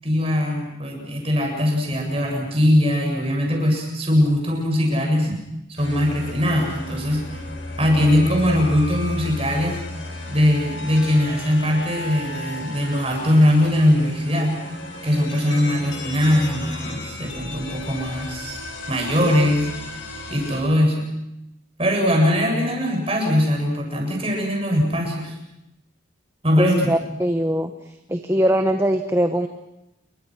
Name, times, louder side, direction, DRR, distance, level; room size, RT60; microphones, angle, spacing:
voice 1, 0.0-5.4 5.8-7.3 7.8-9.8 10.3-14.6 15.0-18.6 18.9-19.7 20.3-21.0 21.8-25.3 26.4-27.0, left 1 dB, 30° right, 1 dB, 7.5 m, -20 dB
sound 1, 5.8-20.6, left 2 dB, 75° left, 6.4 m, -34 dB
voice 2, 26.6-27.7 28.1-29.5, equal, 15° right, 6 dB, 1.1 m, -21 dB
28.5 x 24.0 x 6.3 m, 0.89 s
head